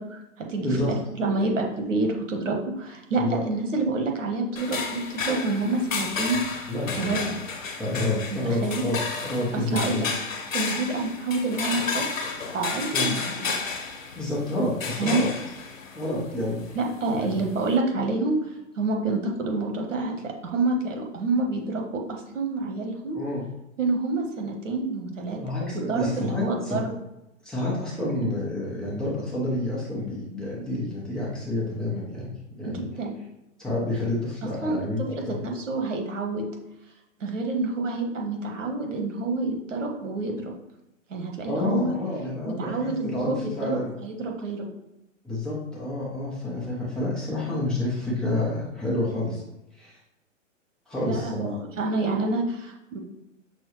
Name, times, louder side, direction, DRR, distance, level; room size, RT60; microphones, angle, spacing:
voice 1, 0.0-6.7 6.9-7.4 8.3-8.9 9.5-10.1 10.5-12.3 12.5-13.6 15.0-15.2 16.7-18.4 18.8-23.2 23.8-26.9 28.1-28.3 32.6-33.2 34.6-34.8 35.1-36.5 37.2-40.4 41.1-41.9 42.4-44.7 51.0-53.0, right 3 dB, 70° right, 2 dB, 1.2 m, -28 dB
voice 2, 0.6-0.9 3.2-3.4 6.7-7.3 7.8-10.1 12.9-13.1 14.1-15.3 15.9-16.8 17.1-17.4 23.1-23.4 25.3-26.8 27.4-32.8 33.6-35.4 41.5-43.9 45.2-49.4 49.8-50.0 50.9-51.5, left 1 dB, ahead, -7 dB, 0.7 m, -29 dB
sound 1, 4.6-17.8, left 4 dB, 85° left, 0.9 m, -32 dB
6.1 x 2.2 x 3.1 m, 0.91 s
hypercardioid pair, 130°, 39 cm